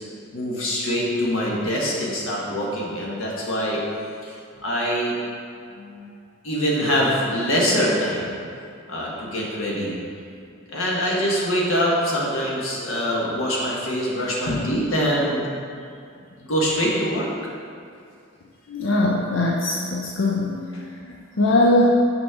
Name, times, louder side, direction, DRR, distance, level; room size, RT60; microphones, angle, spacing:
voice 1, 0.3-3.8 4.2-4.3 4.6-5.2 6.4-8.3 8.9-10.0 10.7-15.4 16.4-17.3, equal, 90° left, -4 dB, 1.5 m, -24 dB
voice 2, 5.8-6.1 10.7-10.8 14.5-14.7 18.7-21.8, left 2 dB, 65° left, -3 dB, 0.5 m, -22 dB
6.2 x 6.1 x 3.7 m, 2.4 s
head